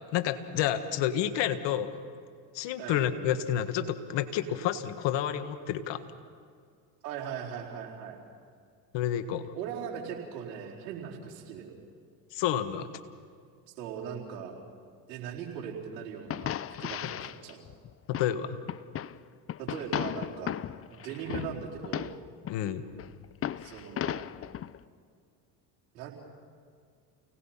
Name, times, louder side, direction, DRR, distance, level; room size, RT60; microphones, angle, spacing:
voice 1, 0.1-1.9 2.5-6.0 8.9-9.5 12.3-12.9 18.1-18.6 22.5-22.8, left 10 dB, 60° left, 10 dB, 1.7 m, -29 dB
voice 2, 7.0-8.2 9.5-11.7 13.7-14.5 15.1-17.6 19.6-20.5 20.9-22.1 23.6-24.3 25.9-26.1, right 8 dB, 80° right, -2 dB, 4.4 m, -39 dB
sound 1, 16.3-18.4 18.7-19.2 19.5-22.6 22.9-24.8, left 10 dB, 30° left, 0.6 m, -36 dB
29.0 x 18.5 x 5.8 m, 2.1 s
hypercardioid pair, 80°, 48 cm